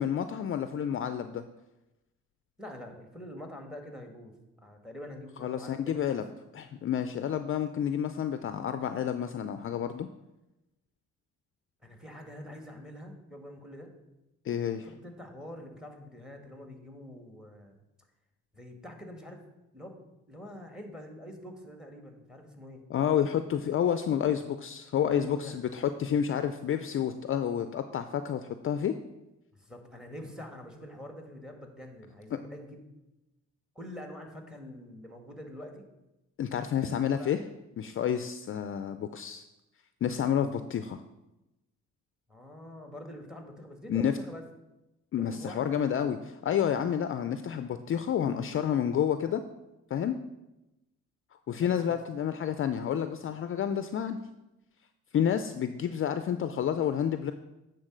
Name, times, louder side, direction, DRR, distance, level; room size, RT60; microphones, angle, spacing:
voice 1, 0.0-1.5 5.4-6.3 6.5-10.1 14.5-14.9 22.9-28.9 36.4-37.4 37.8-39.4 40.0-41.0 43.9-44.1 45.1-49.4 49.9-50.2 51.5-54.2 55.1-57.3, left 9 dB, 45° left, 9 dB, 0.4 m, -29 dB
voice 2, 2.6-4.3 4.6-6.1 11.8-13.9 15.0-17.8 18.5-19.4 19.7-20.0 20.3-22.8 25.1-25.6 29.5-32.8 33.7-35.9 36.7-37.4 42.3-44.4 45.2-45.7 51.6-52.0, left 1 dB, ahead, 4 dB, 1.6 m, -45 dB
8.7 x 3.9 x 6.2 m, 0.96 s
cardioid pair, 90°, 30 cm